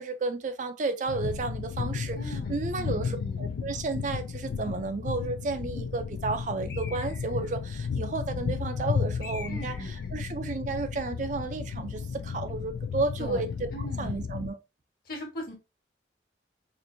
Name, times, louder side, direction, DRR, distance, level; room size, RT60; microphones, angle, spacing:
voice 1, 0.0-13.7 14.0-14.6, right 3 dB, 40° right, 0.4 m, -32 dB
sound 1, 1.1-14.5, left 6 dB, 90° left, 0.3 m, -33 dB
voice 2, 2.2-3.8 9.5-10.2 13.2-14.3 15.0-15.5, equal, 50° left, 1.3 m, -41 dB
Bird, 6.7-7.5 9.2-10.1, left 4 dB, 70° left, 0.9 m, -45 dB
4.4 x 2.5 x 2.5 m
head